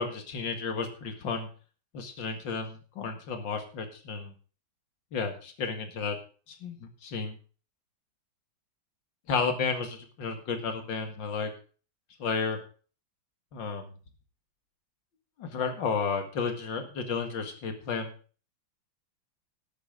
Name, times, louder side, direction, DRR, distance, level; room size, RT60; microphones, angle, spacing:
voice 1, 0.0-1.5 1.9-4.3 5.1-6.2 6.5-7.3 9.3-11.5 12.2-12.6 13.5-13.9 15.4-18.1, left 5 dB, 70° left, 5 dB, 2.6 m, -32 dB
13.5 x 10.5 x 3.8 m, 0.39 s
omnidirectional pair, 2.1 m